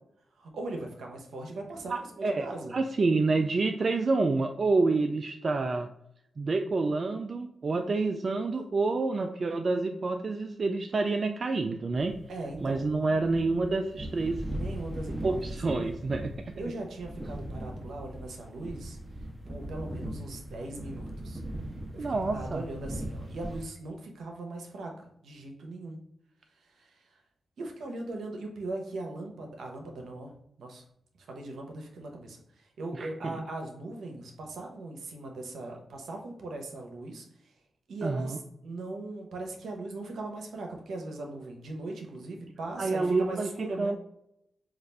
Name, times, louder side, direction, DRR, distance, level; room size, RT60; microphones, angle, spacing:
voice 1, 0.4-2.7 12.3-12.8 14.5-15.4 16.6-19.0 19.5-21.4 21.9-26.0 26.5-27.1 27.6-30.3 30.6-30.8 31.2-37.5 37.9-43.9, right 2 dB, 80° right, 2 dB, 0.7 m, -39 dB
voice 2, 1.9-5.9 6.4-12.2 12.6-14.4 15.2-16.5 22.0-22.6 32.9-33.3 38.0-38.4 42.8-44.0, right 3 dB, 55° right, 5 dB, 0.3 m, -28 dB
sound 1, 11.9-23.6, right 1 dB, 15° right, 0.8 m, -39 dB
4.0 x 2.4 x 3.3 m, 0.76 s
supercardioid pair, 40°, 0 cm